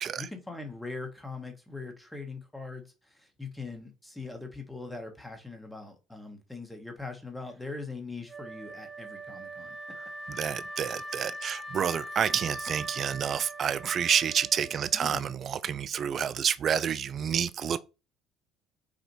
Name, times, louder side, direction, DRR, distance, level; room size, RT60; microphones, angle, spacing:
voice 1, 0.0-9.8 14.9-15.3, left 3 dB, 5° left, 1.2 m, -41 dB
Wind instrument woodwind instrument, 8.3-15.3, right 1 dB, 15° right, 1.1 m, -41 dB
voice 2, 10.3-17.8, right 8 dB, 45° right, 0.3 m, -29 dB
5.0 x 2.4 x 3.0 m
figure-of-eight pair, 60°, 0 cm